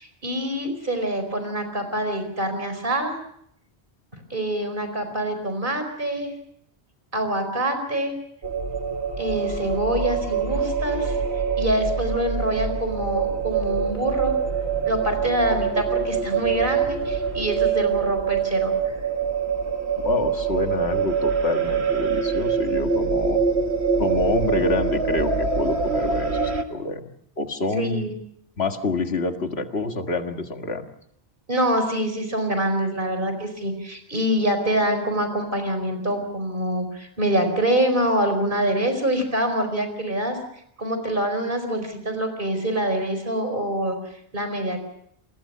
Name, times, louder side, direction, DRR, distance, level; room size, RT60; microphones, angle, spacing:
voice 1, 0.0-3.2 4.3-6.3 7.1-8.1 9.2-11.1 11.6-14.3 14.8-18.9 27.8-28.1 31.5-40.4 40.8-44.0 44.3-44.8, right 1 dB, 55° right, 7 dB, 4.9 m, -25 dB
sound 1, 8.4-26.6, right 6 dB, 85° right, 2.1 m, -25 dB
voice 2, 20.0-23.4 24.0-27.1 27.4-28.1 28.6-30.9, left 3 dB, 80° left, 6 dB, 2.0 m, -27 dB
28.5 x 21.5 x 5.6 m, 0.70 s
omnidirectional pair, 1.1 m